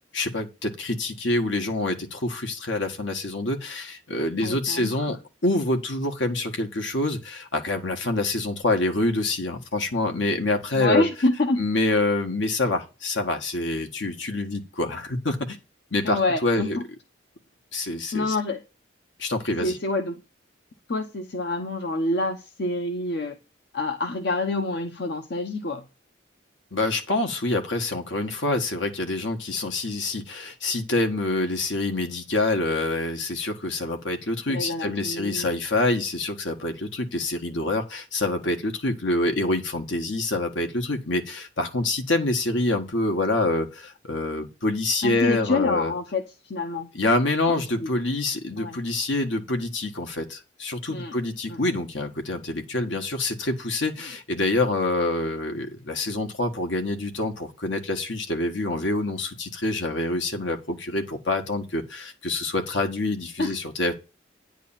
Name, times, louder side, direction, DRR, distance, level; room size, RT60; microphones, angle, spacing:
voice 1, 0.1-5.2 5.4-11.0 11.6-15.6 15.9-16.8 17.7-18.3 19.2-19.8 26.7-45.9 46.9-63.9, left 2 dB, 70° left, 1.6 m, -26 dB
voice 2, 4.4-5.0 10.7-11.6 16.0-16.8 18.1-18.6 19.6-20.2 20.9-23.4 23.7-25.8 34.5-35.6 45.0-46.9 47.5-47.9 48.6-48.8 50.9-51.1 51.5-51.6 63.4-63.5, left 2 dB, 55° left, 0.9 m, -27 dB
10.0 x 3.6 x 7.2 m
head